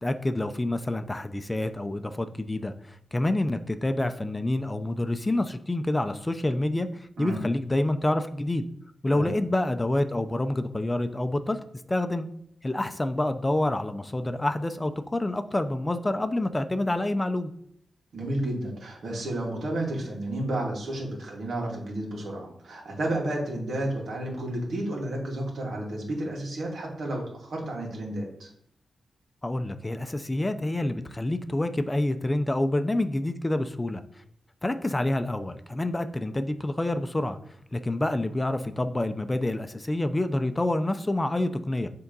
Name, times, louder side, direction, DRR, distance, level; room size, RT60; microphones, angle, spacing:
voice 1, 0.0-8.6 9.0-11.6 11.9-12.3 12.6-17.5 29.4-34.0 34.6-37.4 37.7-41.9, left 1 dB, 20° left, 9 dB, 0.6 m, -27 dB
voice 2, 18.1-28.5, right 1 dB, 75° right, -1 dB, 2.5 m, -31 dB
7.1 x 3.8 x 5.4 m, 0.70 s
cardioid pair, 70°, 0 cm